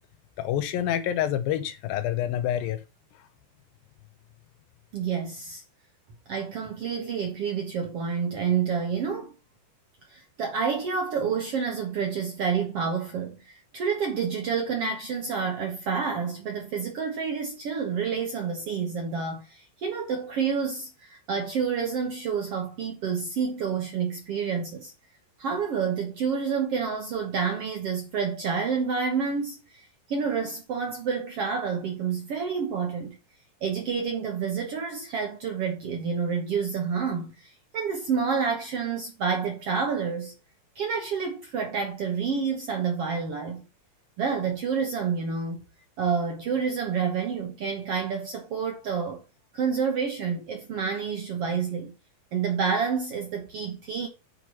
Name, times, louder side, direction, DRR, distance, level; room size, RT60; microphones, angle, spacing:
voice 1, 0.4-2.8, left 11 dB, 80° left, 2.6 m, -27 dB
voice 2, 4.9-5.6 6.3-9.3 10.1-24.9 25.4-33.2 33.6-40.3 40.7-43.7 44.2-45.6 46.0-49.2 49.5-51.9 52.3-54.1, right 6 dB, 60° right, 1.6 m, -29 dB
8.2 x 4.7 x 5.7 m
omnidirectional pair, 4.2 m